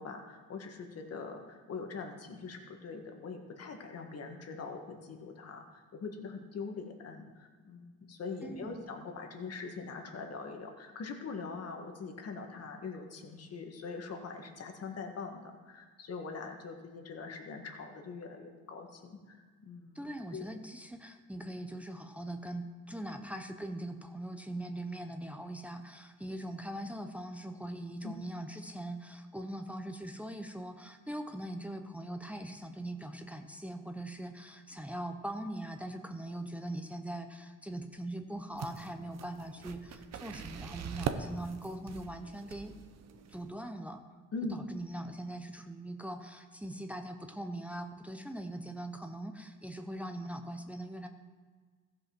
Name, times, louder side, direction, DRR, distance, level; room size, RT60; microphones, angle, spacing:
voice 1, 0.0-20.0 20.3-20.5 28.0-28.1 44.3-44.6, left 4 dB, 55° left, 3 dB, 1.6 m, -43 dB
voice 2, 8.4-8.8 19.9-42.7 43.3-44.0 44.5-51.1, right 1 dB, 5° right, 6 dB, 0.7 m, -41 dB
sound 1, 38.5-43.5, right 7 dB, 60° right, 0.8 m, -42 dB
14.5 x 5.2 x 6.0 m, 1.5 s
cardioid pair, 90°, 30 cm